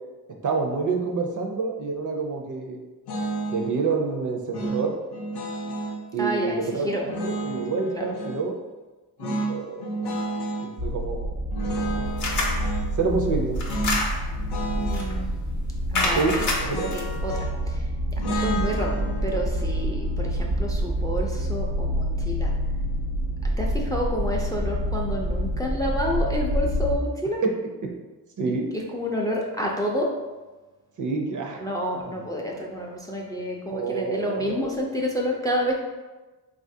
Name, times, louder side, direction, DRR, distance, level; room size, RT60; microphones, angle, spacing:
voice 1, 0.4-2.8 3.5-5.0 6.1-7.2 7.5-8.5 9.2-10.1 10.6-11.3 11.6-12.3 13.0-13.6 16.1-16.3 16.6-16.9 27.4-27.5 28.4-28.7 31.0-31.7 32.1-32.2 33.7-34.7, right 4 dB, 50° right, 2 dB, 0.5 m, -28 dB
sound 1, 3.1-3.7 4.5-6.0 7.0-8.4 9.2-10.7 11.5-12.9 13.7-14.0 14.3-15.1 15.9-17.7 18.2-21.3, right 1 dB, 85° left, 0.6 m, -32 dB
voice 2, 6.2-7.0 7.9-8.1 14.8-15.3 16.0-16.5 16.9-22.5 23.6-27.4 28.7-30.1 31.6-35.8, equal, 10° left, -1 dB, 0.3 m, -29 dB
sound 2, 10.8-27.0, equal, 90° right, 1.1 m, -28 dB
sound 3, 12.2-12.6 13.6-14.4 14.9-15.2 15.9-17.0, left 2 dB, 50° left, 0.6 m, -27 dB
3.8 x 2.4 x 2.6 m, 1.2 s
wide cardioid pair, 90°, 39 cm